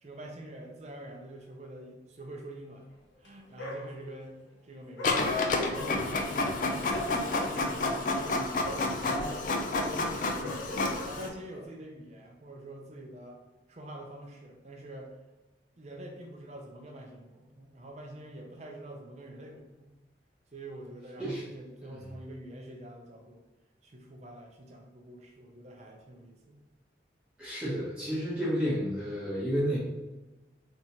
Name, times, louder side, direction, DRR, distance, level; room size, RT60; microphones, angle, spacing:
voice 1, 0.0-2.9 3.2-9.5 9.7-10.6 11.0-13.4 13.7-15.2 15.8-19.9 20.5-23.4 23.8-26.7, right 1 dB, 35° right, 1 dB, 0.5 m, -46 dB
Dog, 3.1-3.3 3.6-4.3 5.0-11.6, left 1 dB, 75° left, 0.7 m, -43 dB
Printer, 5.0-11.3, left 2 dB, 45° left, 0.4 m, -30 dB
voice 2, 27.4-29.8, equal, 5° right, -10 dB, 0.9 m, -31 dB
3.4 x 2.8 x 2.9 m, 1.1 s
head